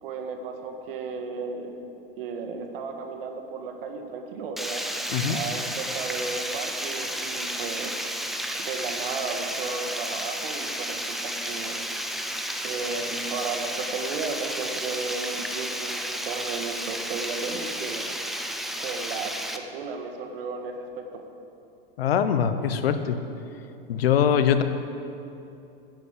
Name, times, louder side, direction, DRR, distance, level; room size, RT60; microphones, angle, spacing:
voice 1, 0.0-1.8 2.2-4.8 5.3-7.9 8.6-11.8 12.6-18.1 18.8-21.2, right 4 dB, 70° right, 5 dB, 1.8 m, -34 dB
Water, 4.6-19.6, equal, ahead, 0.6 m, -32 dB
voice 2, 22.0-23.2 23.9-24.6, left 8 dB, 85° left, 10 dB, 1.0 m, -22 dB
10.5 x 8.4 x 8.5 m, 2.7 s
hypercardioid pair, 125°, 29 cm